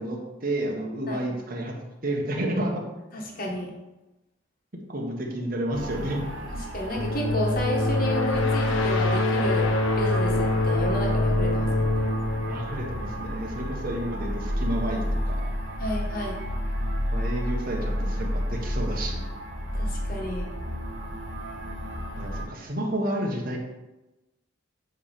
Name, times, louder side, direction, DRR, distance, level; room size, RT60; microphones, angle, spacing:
voice 1, 0.0-1.7 2.0-2.7 4.9-6.2 12.4-15.4 17.1-19.2 22.2-23.6, right 1 dB, 50° right, -1 dB, 1.4 m, -30 dB
voice 2, 3.1-3.7 6.5-12.0 15.8-16.4 19.7-20.5, equal, 50° left, -1 dB, 1.5 m, -32 dB
sound 1, 5.7-22.5, equal, 80° right, 1.3 m, -31 dB
sound 2, 7.0-13.6, left 2 dB, 85° left, 0.8 m, -25 dB
8.2 x 3.3 x 5.2 m, 1.0 s
head